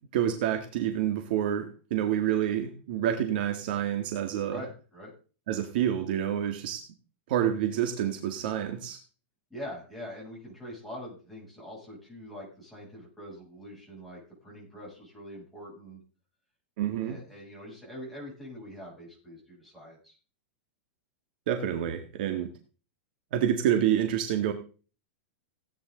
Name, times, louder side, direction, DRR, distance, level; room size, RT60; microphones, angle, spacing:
voice 1, 0.1-4.6 5.5-6.9 7.3-9.0 16.8-17.2 21.5-22.5 23.3-24.5, right 10 dB, 55° right, 6 dB, 1.9 m, -28 dB
voice 2, 4.5-5.1 9.5-16.0 17.0-20.2, equal, ahead, -6 dB, 7.8 m, -44 dB
17.5 x 9.6 x 3.9 m, 0.37 s
supercardioid pair, 165°, 6 cm